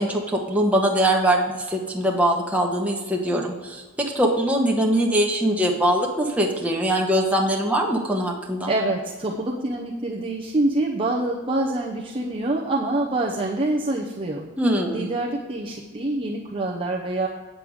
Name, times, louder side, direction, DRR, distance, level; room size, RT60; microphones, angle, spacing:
voice 1, 0.0-8.7 14.6-15.1, right 1 dB, 5° right, -1 dB, 1.2 m, -22 dB
voice 2, 8.7-14.5 14.9-17.3, right 2 dB, 25° right, -3 dB, 0.7 m, -26 dB
8.6 x 7.7 x 4.9 m, 1.4 s
head